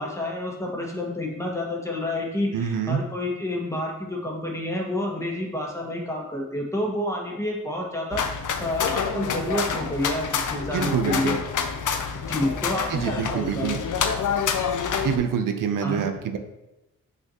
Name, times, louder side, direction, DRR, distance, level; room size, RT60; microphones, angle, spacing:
voice 1, 0.0-8.2 8.6-11.4 12.3-13.8 15.8-16.0, left 1 dB, 10° left, -1 dB, 1.6 m, -29 dB
voice 2, 2.5-3.0 10.7-11.4 12.9-13.8 15.0-16.4, right 7 dB, 85° right, 7 dB, 0.7 m, -26 dB
sound 1, 8.1-15.2, left 6 dB, 70° left, 0.7 m, -27 dB
5.8 x 5.7 x 2.9 m, 0.94 s
cardioid pair, 80°, 32 cm